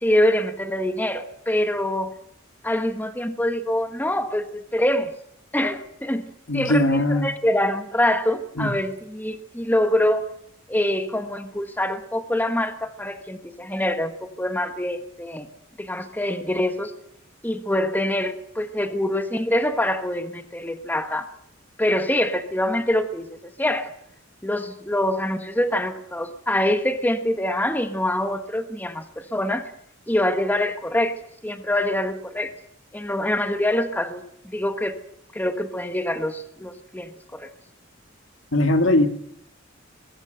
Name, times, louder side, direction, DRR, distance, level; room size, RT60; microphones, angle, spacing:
voice 1, 0.0-2.1 2.6-5.1 5.5-6.2 6.5-10.2 10.7-15.5 15.8-16.9 17.4-21.2 21.8-23.9 24.4-29.7 30.1-31.2 31.4-32.5 32.9-35.0 35.3-37.5, left 1 dB, 10° left, 8 dB, 1.3 m, -25 dB
voice 2, 6.5-7.3 8.6-8.7 38.5-39.1, left 1 dB, 75° left, 8 dB, 2.0 m, -19 dB
21.5 x 15.5 x 7.9 m, 0.72 s
head